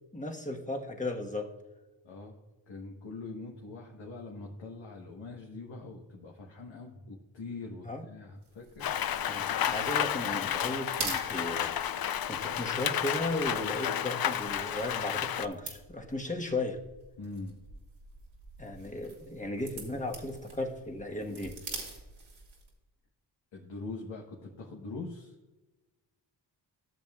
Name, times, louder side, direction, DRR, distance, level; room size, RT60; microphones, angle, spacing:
voice 1, 0.1-1.5 7.8-8.1 9.3-16.8 18.6-21.5, left 2 dB, 15° left, 2 dB, 1.2 m, -36 dB
voice 2, 2.0-2.4 2.7-8.8 17.2-17.5 23.5-25.3, left 3 dB, 75° left, -1 dB, 1.3 m, -43 dB
sound 1, 8.4-22.8, right 4 dB, 80° right, 2.2 m, -46 dB
Rain, 8.8-15.5, left 10 dB, 50° left, 0.5 m, -31 dB
13.5 x 7.0 x 2.3 m, 1.1 s
cardioid pair, 60°, 46 cm